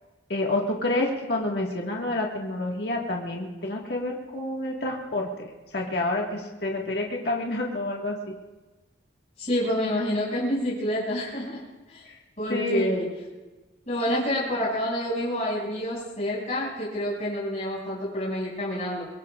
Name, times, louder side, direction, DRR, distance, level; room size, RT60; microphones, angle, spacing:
voice 1, 0.3-5.3 5.7-8.1 12.5-12.9, left 2 dB, 55° left, -1 dB, 1.7 m, -28 dB
voice 2, 9.4-11.6 11.9-12.0 12.4-13.1 13.9-19.0, equal, 35° left, -6 dB, 6.2 m, -28 dB
24.5 x 21.5 x 2.4 m, 1.2 s
head